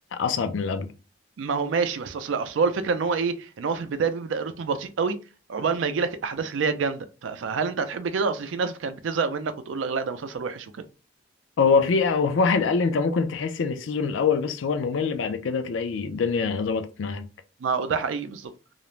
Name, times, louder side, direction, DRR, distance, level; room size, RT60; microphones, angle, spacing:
voice 1, 0.1-0.9 11.6-17.3, left 5 dB, 80° left, 0.4 m, -24 dB
voice 2, 1.4-5.2 5.5-10.7 17.6-18.5, right 5 dB, 80° right, 0.4 m, -27 dB
2.4 x 2.0 x 3.0 m
head